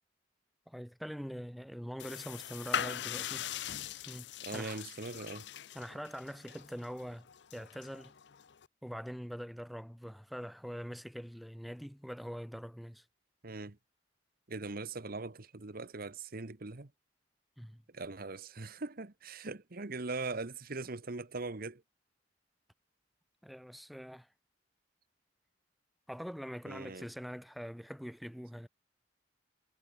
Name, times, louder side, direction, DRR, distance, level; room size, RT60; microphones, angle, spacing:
voice 1, 0.7-3.5 4.1-4.8 5.7-8.1 8.8-13.0 17.6-17.8 23.4-24.3 26.1-28.7, equal, ahead, 1.7 m, -44 dB
sound 1, 2.0-8.7, left 9 dB, 65° left, 0.7 m, -41 dB
voice 2, 4.4-5.5 13.4-13.8 14.5-16.9 17.9-21.8 26.6-27.1, right 3 dB, 55° right, 1.2 m, -41 dB
head